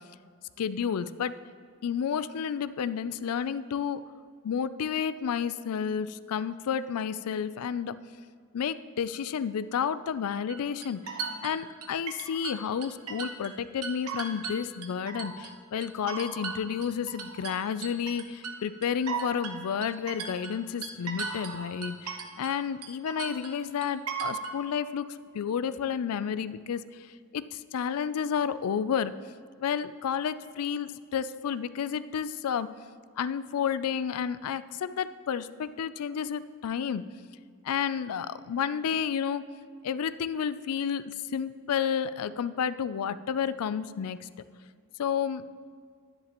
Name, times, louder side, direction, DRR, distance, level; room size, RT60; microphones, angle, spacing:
voice 1, 0.6-1.3 1.8-4.0 4.4-7.9 8.5-11.2 11.4-27.1 27.3-29.1 29.6-32.7 33.2-37.1 37.6-39.5 39.8-44.3 45.0-45.4, left 7 dB, 80° left, 15 dB, 0.4 m, -31 dB
sound 1, 10.5-13.5 13.8-15.5 15.8-22.6 22.8-24.6, right 5 dB, 80° right, 0.9 m, -37 dB
10.5 x 10.0 x 3.0 m, 2.1 s
head